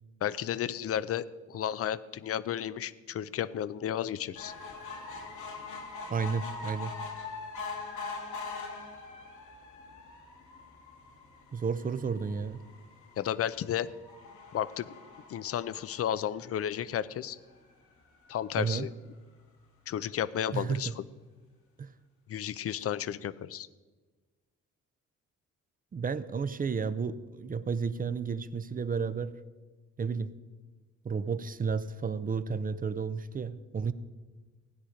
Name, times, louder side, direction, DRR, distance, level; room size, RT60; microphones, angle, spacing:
voice 1, 0.2-4.5 13.2-13.9 14.5-14.9 15.3-17.4 18.3-18.9 19.9-21.0 22.3-23.7, left 10 dB, 50° left, 17 dB, 0.5 m, -33 dB
sound 1, 4.4-17.0 17.5-17.6 17.9-18.0 18.3-18.4, left 4 dB, 80° left, 2.4 m, -43 dB
voice 2, 6.1-6.9 11.5-12.6 18.6-18.9 20.5-20.9 21.8-21.9 25.9-29.3 30.0-30.3 31.0-33.9, right 5 dB, 30° right, 14 dB, 0.6 m, -32 dB
16.0 x 9.9 x 5.1 m, 1.3 s
cardioid pair, 90°, 30 cm